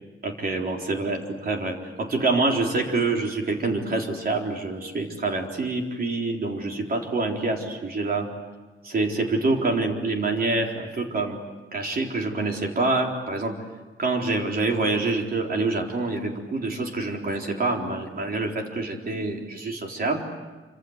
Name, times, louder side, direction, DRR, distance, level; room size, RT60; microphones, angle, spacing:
voice 1, 0.2-8.3 8.8-11.4 11.7-13.6 14.0-20.2, right 3 dB, 45° right, 1 dB, 4.0 m, -26 dB
28.0 x 26.0 x 8.2 m, 1.3 s
wide cardioid pair, 145°, 21 cm